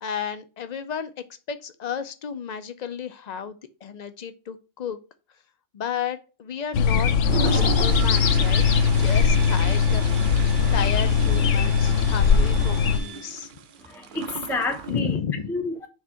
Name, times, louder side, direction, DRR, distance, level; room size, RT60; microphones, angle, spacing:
voice 1, 0.0-1.1 1.5-5.0 5.7-7.1 7.4-8.6 9.0-10.1 10.7-13.5 14.9-15.5, left 7 dB, 55° left, 0.5 m, -32 dB
sound 1, 6.7-13.0, left 6 dB, 75° left, 0.9 m, -20 dB
Toilet flush, 7.1-15.0, right 6 dB, 55° right, 0.6 m, -34 dB
Wind instrument woodwind instrument, 8.4-13.3, right 5 dB, 30° right, 1.1 m, -44 dB
voice 2, 13.8-15.2 15.5-15.9, left 3 dB, 5° left, 0.6 m, -29 dB
4.7 x 3.6 x 5.5 m
omnidirectional pair, 1.3 m